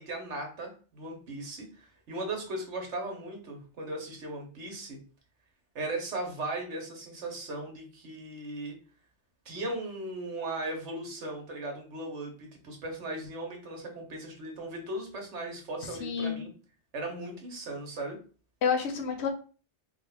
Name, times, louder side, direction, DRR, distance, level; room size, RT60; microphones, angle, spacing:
voice 1, 0.0-5.0 5.7-8.7 9.4-16.5 16.9-18.2, right 2 dB, 85° right, 2 dB, 1.4 m, -37 dB
voice 2, 15.9-16.5 18.6-19.3, left 6 dB, 70° left, 5 dB, 1.0 m, -29 dB
3.3 x 2.5 x 4.0 m, 0.37 s
omnidirectional pair, 1.2 m